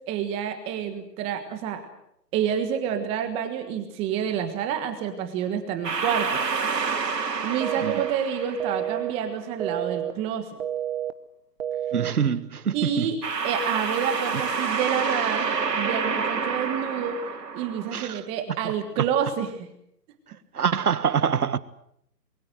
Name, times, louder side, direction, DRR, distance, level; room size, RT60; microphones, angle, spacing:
voice 1, 0.1-1.8 2.3-6.4 7.2-10.5 12.7-13.2 13.4-19.7, right 8 dB, 10° right, 1.4 m, -28 dB
sound 1, 5.8-9.2 13.2-18.0, right 5 dB, 80° right, 4.1 m, -28 dB
sound 2, 7.6-8.1 8.6-9.1 9.6-10.1 10.6-11.1 11.6-12.1, right 11 dB, 40° right, 1.1 m, -29 dB
voice 2, 11.9-13.1 17.9-18.2 20.5-21.6, right 7 dB, 65° right, 1.7 m, -25 dB
26.0 x 22.5 x 7.9 m
hypercardioid pair, 155°, 48 cm